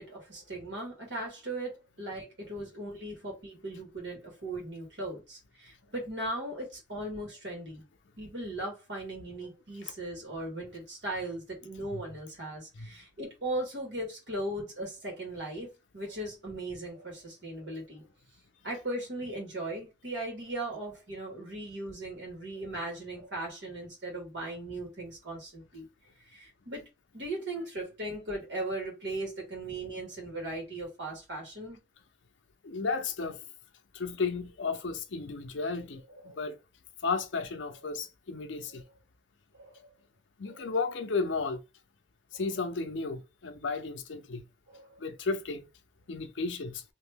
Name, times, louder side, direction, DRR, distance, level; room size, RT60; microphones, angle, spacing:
voice 1, 0.0-7.8 8.2-18.0 18.6-25.9 26.3-26.9 27.1-31.8 36.1-36.5 38.7-38.8 39.5-39.9 40.5-40.7 42.3-42.5 44.7-44.9, right 1 dB, 75° right, 1.7 m, -38 dB
voice 2, 32.6-33.4 33.9-36.6 37.0-38.8 40.4-41.6 42.3-44.4 45.0-45.7 46.1-46.8, left 4 dB, 90° left, 0.6 m, -33 dB
3.0 x 2.6 x 3.4 m
head